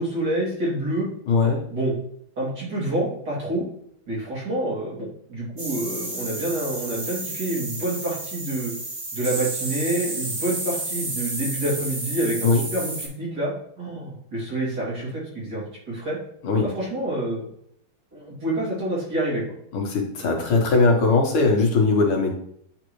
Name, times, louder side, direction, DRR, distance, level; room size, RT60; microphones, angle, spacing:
voice 1, 0.0-1.1 1.7-1.9 2.4-3.6 4.1-8.7 9.1-16.2 16.6-17.4 18.1-19.4, right 1 dB, 50° right, -6 dB, 3.2 m, -27 dB
voice 2, 1.3-1.6 12.4-12.6 16.4-16.7 19.7-22.3, left 3 dB, 80° left, 1 dB, 2.1 m, -20 dB
sound 1, 5.6-13.1, right 2 dB, 30° right, 1.2 m, -31 dB
8.9 x 3.9 x 3.1 m, 0.68 s
omnidirectional pair, 2.3 m